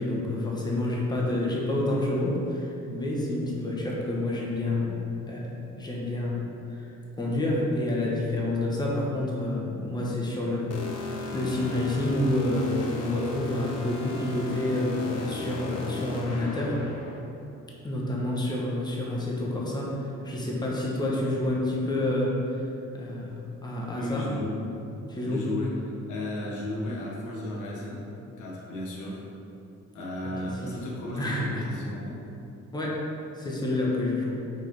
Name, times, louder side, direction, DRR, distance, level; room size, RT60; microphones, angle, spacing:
voice 1, 0.0-6.8 7.2-16.8 17.8-20.0 20.2-22.6 22.9-24.3 25.1-25.4 31.2-31.6 32.7-33.0 33.4-34.4, left 1 dB, 15° left, -4 dB, 1.2 m, -28 dB
sound 1, 10.7-17.2, left 2 dB, 55° left, 0.8 m, -36 dB
voice 2, 23.9-24.6 25.3-25.8 26.1-29.2 29.9-32.2, left 1 dB, 80° left, -4 dB, 1.3 m, -34 dB
5.3 x 3.7 x 5.2 m, 2.9 s
cardioid pair, 90°, 30 cm